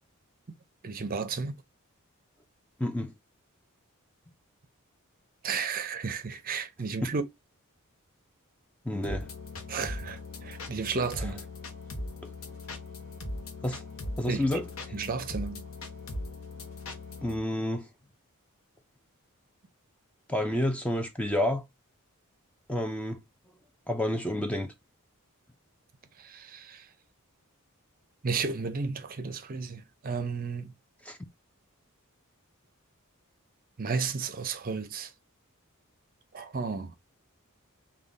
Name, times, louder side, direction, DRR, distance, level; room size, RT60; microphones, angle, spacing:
voice 1, 0.8-1.5 5.4-7.2 9.7-11.4 14.3-14.4 14.9-15.6 26.2-26.9 28.2-30.7 33.8-35.1 36.3-37.0, right 5 dB, 40° right, 0.6 m, -33 dB
voice 2, 2.8-3.1 7.0-7.1 8.8-9.3 11.2-11.3 12.2-12.3 13.6-13.8 14.2-15.0 17.2-17.9 20.3-21.6 22.7-23.2 23.9-24.7 31.0-31.2, left 1 dB, 5° left, 0.4 m, -30 dB
sound 1, 9.0-17.4, left 2 dB, 65° left, 0.8 m, -39 dB
3.7 x 2.3 x 3.7 m
head